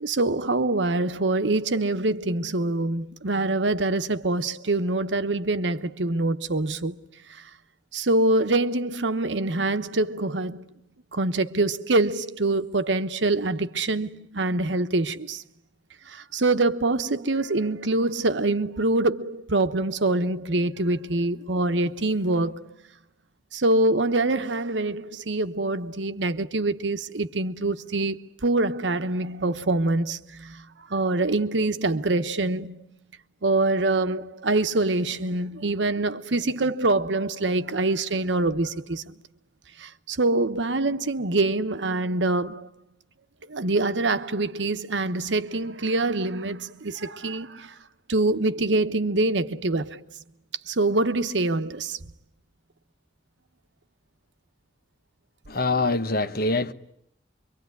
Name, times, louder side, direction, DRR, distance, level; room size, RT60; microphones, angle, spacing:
voice 1, 0.0-7.0 7.3-7.4 7.9-10.7 11.1-15.4 16.1-22.7 23.5-30.6 30.9-32.8 33.4-39.1 39.8-42.7 43.5-47.7 48.1-50.0 50.7-52.0, right 2 dB, 85° right, 1.1 m, -25 dB
voice 2, 55.5-56.7, left 2 dB, 55° left, 1.1 m, -24 dB
26.0 x 24.0 x 9.5 m
head